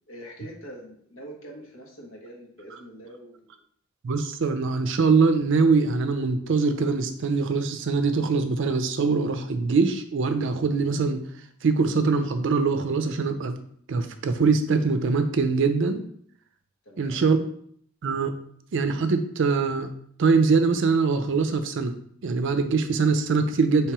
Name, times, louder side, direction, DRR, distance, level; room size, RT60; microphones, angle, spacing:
voice 1, 0.1-3.6 16.8-17.2, right 1 dB, 70° left, -1 dB, 1.2 m, -44 dB
voice 2, 4.0-11.2 11.6-13.6 13.9-16.0 17.0-17.4 18.0-18.3 18.7-19.9 20.2-21.9 22.2-23.9, right 4 dB, 65° right, 9 dB, 0.4 m, -23 dB
3.3 x 3.0 x 4.6 m, 0.64 s
head